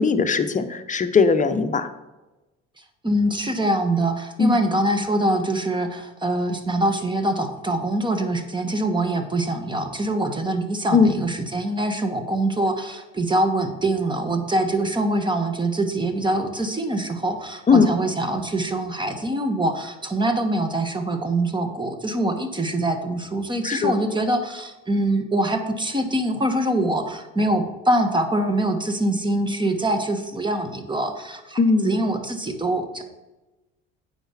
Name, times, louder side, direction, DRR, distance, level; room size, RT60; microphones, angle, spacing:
voice 1, 0.0-1.9 4.4-4.6 10.9-11.1 17.7-17.9 23.6-24.0 31.6-32.0, left 4 dB, 25° left, 8 dB, 0.9 m, -19 dB
voice 2, 3.0-31.6 31.8-33.0, right 1 dB, 15° right, 6 dB, 1.4 m, -24 dB
9.0 x 5.0 x 5.8 m, 1.1 s
supercardioid pair, 85°, 29 cm